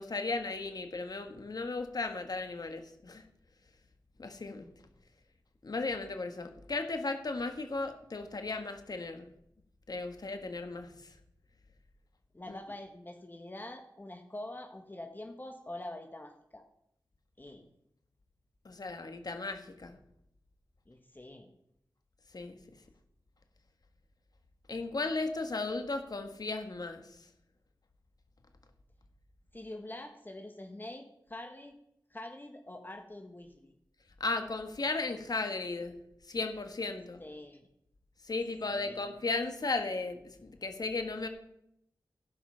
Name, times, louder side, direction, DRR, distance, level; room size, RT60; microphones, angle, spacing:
voice 1, 0.0-3.2 4.2-4.7 5.6-9.3 9.9-10.9 12.5-12.6 18.6-20.0 22.3-22.6 24.7-27.0 34.2-36.0 36.3-37.2 38.2-41.3, left 3 dB, 60° left, 7 dB, 1.6 m, -35 dB
voice 2, 12.3-16.6 17.4-17.7 20.9-21.5 29.5-31.8 32.1-33.7 37.2-37.6 38.7-39.0, left 1 dB, 25° left, 4 dB, 1.2 m, -45 dB
15.5 x 5.7 x 5.7 m, 0.79 s
wide cardioid pair, 60°, 8 cm